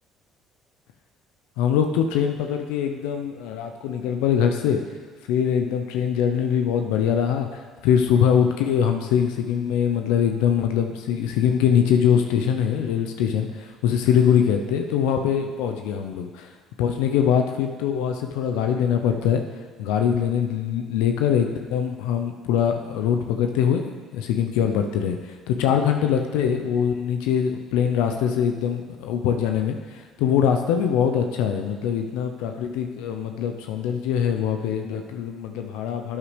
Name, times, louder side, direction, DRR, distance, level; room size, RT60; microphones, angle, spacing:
voice 1, 1.6-4.8 5.3-16.5 16.8-19.4 19.8-36.2, left 8 dB, 75° left, 5 dB, 0.6 m, -23 dB
12.5 x 8.9 x 3.3 m, 1.5 s
hypercardioid pair, 60°, 0 cm